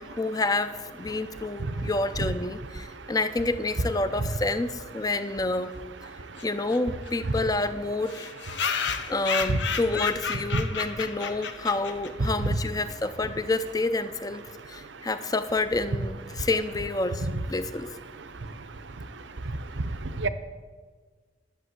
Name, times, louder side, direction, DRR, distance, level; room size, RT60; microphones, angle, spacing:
voice 1, 0.0-5.7 6.4-8.3 9.1-17.9, left 2 dB, 20° left, 12 dB, 0.5 m, -28 dB
voice 2, 1.6-1.9 6.3-6.4 8.7-8.9 10.5-10.6 12.4-12.6 14.9-15.0 16.3-16.5 18.3-20.3, right 2 dB, 80° right, 12 dB, 0.7 m, -32 dB
sound 1, 6.4-6.5 6.7-6.8 7.1-7.2 7.4-7.5 8.1-12.3, left 6 dB, 75° left, 0.8 m, -31 dB
11.0 x 7.3 x 8.0 m, 1.5 s
head